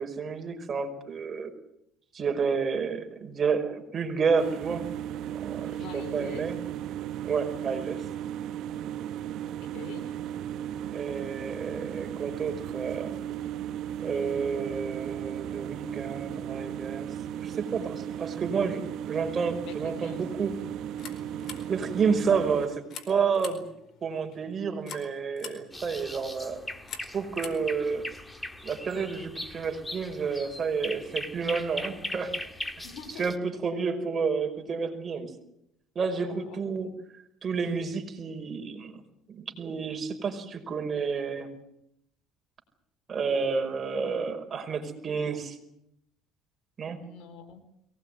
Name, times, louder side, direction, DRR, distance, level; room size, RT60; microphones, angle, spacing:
voice 1, 0.0-1.5 2.1-4.9 5.3-6.6 7.2-8.1 10.9-13.2 14.0-20.5 21.7-23.7 24.0-26.6 27.0-28.0 28.6-32.3 33.2-35.3 36.0-36.9 37.4-39.0 39.3-41.5 43.1-45.6 46.8-47.0, right 5 dB, 35° right, 5 dB, 5.3 m, -30 dB
sound 1, 4.4-22.7, right 10 dB, 65° right, 1.2 m, -36 dB
voice 2, 5.6-6.5 9.7-10.1 19.6-20.3 21.4-21.6 32.8-33.3 36.2-36.6 47.0-47.6, left 7 dB, 70° left, 8 dB, 3.9 m, -44 dB
sound 2, 20.8-28.3, left 7 dB, 50° left, 4.5 m, -47 dB
sound 3, 25.7-33.4, left 1 dB, 10° left, 2.0 m, -39 dB
23.0 x 19.5 x 9.3 m, 0.79 s
cardioid pair, 110°, 0 cm